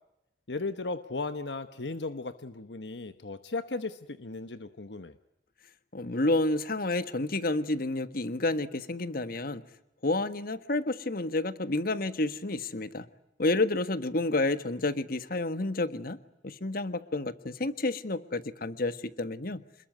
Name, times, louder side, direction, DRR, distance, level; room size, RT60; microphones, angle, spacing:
voice 1, 0.5-5.1, left 3 dB, 75° left, 11 dB, 1.1 m, -36 dB
voice 2, 5.9-9.6 10.0-13.0 13.4-16.2 16.4-19.6, left 2 dB, 55° left, 12 dB, 1.5 m, -30 dB
27.5 x 21.0 x 9.4 m, 0.88 s
head